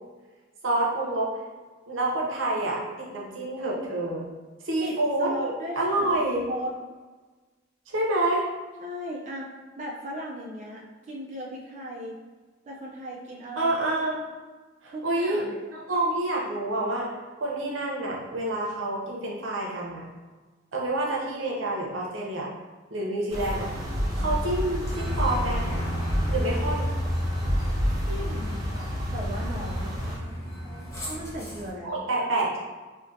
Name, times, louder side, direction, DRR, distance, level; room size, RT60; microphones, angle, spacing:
voice 1, 0.6-1.3 1.9-4.3 4.6-6.4 7.9-8.4 13.6-14.2 14.8-15.4 15.7-17.1 17.4-20.0 20.7-22.5 22.9-23.7 24.1-25.7 26.3-26.9 31.8-32.6, right 2 dB, 90° right, -3 dB, 0.7 m, -28 dB
voice 2, 5.2-6.1 6.5-6.8 8.8-12.2 12.6-13.7 14.9-15.6 24.2-24.3 28.0-29.9 31.1-32.0, equal, 40° right, -4 dB, 0.4 m, -37 dB
sound 1, 23.3-30.2, equal, 20° right, 0.8 m, -29 dB
Aircraft, 24.9-31.7, equal, 15° left, 0.8 m, -33 dB
3.6 x 2.2 x 2.6 m, 1.3 s
head